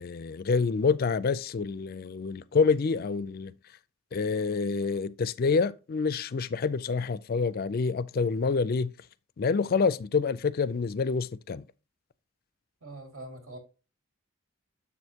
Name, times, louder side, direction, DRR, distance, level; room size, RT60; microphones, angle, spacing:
voice 1, 0.0-3.5 4.1-8.9 9.4-11.6, left 5 dB, 45° left, 0.4 m, -27 dB
voice 2, 12.8-13.6, right 2 dB, 75° right, 2.3 m, -43 dB
7.2 x 6.3 x 2.8 m
head